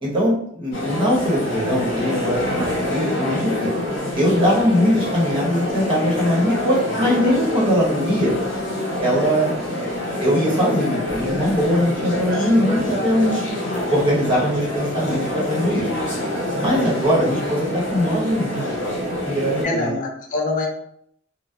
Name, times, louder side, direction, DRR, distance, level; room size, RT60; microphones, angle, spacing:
voice 1, 0.0-3.7 4.1-8.3 9.0-9.5 10.2-13.4 13.9-15.8 16.6-18.6 19.2-19.9, equal, 25° right, -7 dB, 1.0 m, -21 dB
sound 1, 0.7-19.7, left 1 dB, 70° left, 0.9 m, -26 dB
voice 2, 19.6-20.7, left 2 dB, 45° left, 2 dB, 0.4 m, -25 dB
2.6 x 2.0 x 2.3 m, 0.68 s
head